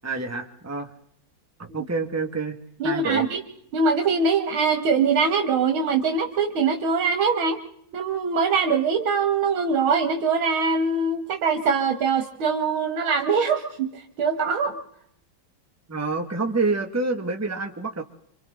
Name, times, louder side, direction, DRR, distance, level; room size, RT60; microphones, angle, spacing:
voice 1, 0.0-0.9 1.6-2.6 2.8-3.3 15.9-18.0, right 3 dB, 10° right, 3 dB, 1.7 m, -27 dB
voice 2, 2.8-3.4 3.7-7.6 7.9-14.8, right 5 dB, 85° right, 6 dB, 2.4 m, -23 dB
27.0 x 26.0 x 3.9 m, 0.73 s
omnidirectional pair, 2.2 m